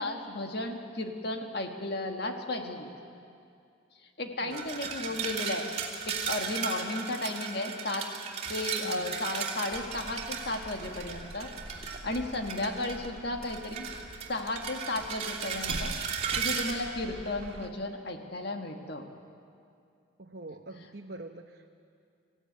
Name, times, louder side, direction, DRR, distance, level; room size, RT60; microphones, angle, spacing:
voice 1, 0.0-2.9 4.2-5.6 6.1-8.1 8.5-13.9 14.3-16.0 16.4-19.0, left 2 dB, 55° left, 3 dB, 1.8 m, -34 dB
voice 2, 4.4-5.3 8.8-9.2 12.6-12.8 20.2-21.7, right 2 dB, 55° right, 2 dB, 0.9 m, -45 dB
sound 1, 4.5-13.1 13.4-16.7, right 6 dB, 35° right, 3.0 m, -36 dB
sound 2, 9.7-17.7, right 1 dB, 80° right, 1.6 m, -45 dB
25.5 x 16.0 x 9.5 m, 2.4 s
head